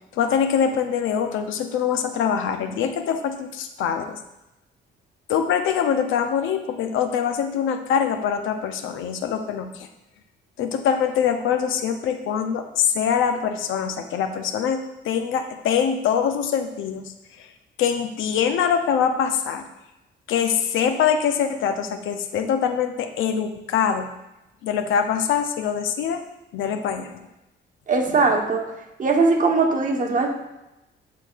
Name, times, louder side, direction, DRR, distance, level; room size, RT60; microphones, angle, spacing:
voice 1, 0.1-4.2 5.3-9.9 10.6-17.1 17.4-17.5 17.8-19.7 20.3-24.1 24.6-26.2 26.5-27.3, left 7 dB, 80° left, 7 dB, 0.6 m, -24 dB
voice 2, 27.9-28.6 29.0-30.3, right 3 dB, 40° right, 2 dB, 1.1 m, -20 dB
11.0 x 4.2 x 2.4 m, 0.93 s
cardioid pair, 90°, 20 cm